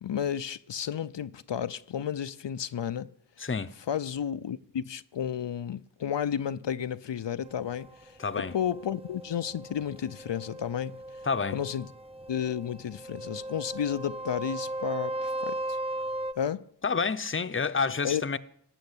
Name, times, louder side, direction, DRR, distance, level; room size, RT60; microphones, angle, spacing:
voice 1, 0.0-3.1 3.9-11.2 11.5-11.9 12.3-15.8 16.4-16.6 18.0-18.2, left 9 dB, 80° left, 0.6 m, -32 dB
voice 2, 3.4-3.7 8.2-8.5 11.3-11.6 16.8-18.4, left 5 dB, 30° left, 0.7 m, -28 dB
sound 1, 7.4-16.3, right 1 dB, 15° right, 0.6 m, -37 dB
17.5 x 6.4 x 9.8 m
wide cardioid pair, 55°, 42 cm